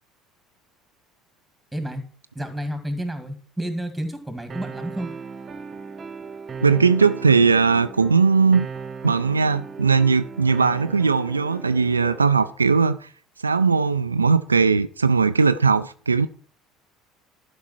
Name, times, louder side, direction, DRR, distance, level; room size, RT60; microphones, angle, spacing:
voice 1, 1.7-2.0 2.4-5.1, right 1 dB, 5° right, 2.0 m, -30 dB
sound 1, 4.5-12.5, right 5 dB, 30° right, 1.0 m, -37 dB
voice 2, 6.6-8.7 9.0-13.1 13.4-16.3, right 5 dB, 90° right, 0.3 m, -19 dB
12.0 x 5.2 x 4.5 m
figure-of-eight pair, 60°, 0 cm